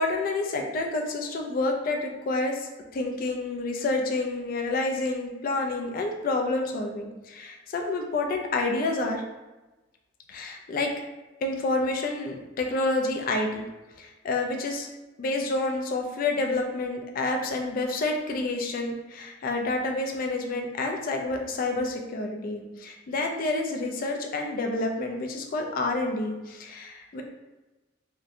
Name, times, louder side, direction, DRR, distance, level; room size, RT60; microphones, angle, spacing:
voice 1, 0.0-9.2 10.3-10.9 11.4-13.6 14.0-14.9 15.2-27.2, left 2 dB, 45° left, 2 dB, 0.3 m, -29 dB
2.8 x 2.1 x 2.5 m, 1.1 s
head